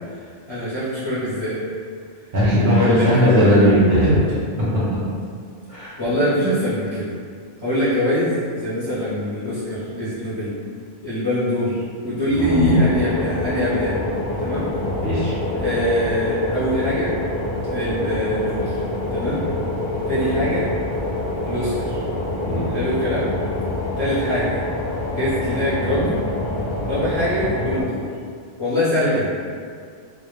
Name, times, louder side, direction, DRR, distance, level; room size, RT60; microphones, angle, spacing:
voice 1, 0.5-1.6 2.6-3.6 6.0-7.1 7.6-10.5 11.0-14.0 14.4-14.7 15.6-17.1 17.7-18.8 19.1-19.4 20.1-20.7 21.4-22.0 22.7-23.3 24.0-24.6 25.1-26.2 26.9-28.0 28.6-29.3, left 1 dB, 35° left, -13 dB, 0.5 m, -23 dB
voice 2, 2.3-4.2 4.6-5.2 5.7-5.9 6.4-6.5 12.3-12.7 15.0-15.3 20.4-20.5 22.4-22.7, equal, 50° right, -11 dB, 0.6 m, -18 dB
sound 1, 12.4-27.8, left 2 dB, 65° left, 0.7 m, -26 dB
2.1 x 2.0 x 3.0 m, 2.1 s
omnidirectional pair, 1.3 m